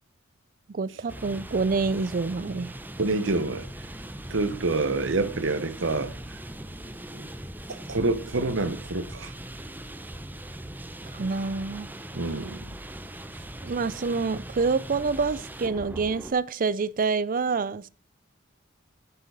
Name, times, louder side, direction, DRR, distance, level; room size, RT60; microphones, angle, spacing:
voice 1, 0.7-2.7 11.1-11.9 13.6-17.9, right 4 dB, 45° right, 0.5 m, -27 dB
sound 1, 1.1-16.3, right 1 dB, 10° right, 0.7 m, -40 dB
voice 2, 3.0-3.7 4.3-6.1 7.1-7.3 7.7-9.3 12.1-12.6, right 3 dB, 70° right, 1.2 m, -27 dB
9.7 x 6.9 x 4.0 m
head